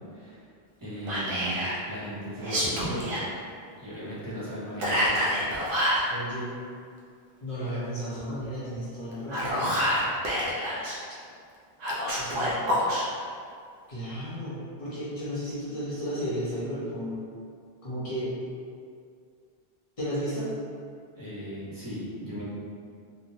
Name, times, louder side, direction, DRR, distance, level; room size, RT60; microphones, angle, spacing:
voice 1, 0.8-3.2 3.8-5.2 21.1-22.4, equal, 25° right, -10 dB, 0.7 m, -36 dB
Whispering, 1.1-1.8 2.4-3.2 4.8-6.1 9.1-11.0 11.8-13.0, equal, 60° right, 0.7 m, -27 dB
voice 2, 6.1-6.5 7.4-9.6 12.2-12.8 13.9-17.2 17.8-18.3 20.0-20.5, equal, 35° left, -9 dB, 0.8 m, -33 dB
3.3 x 2.1 x 2.7 m, 2.2 s
omnidirectional pair, 1.1 m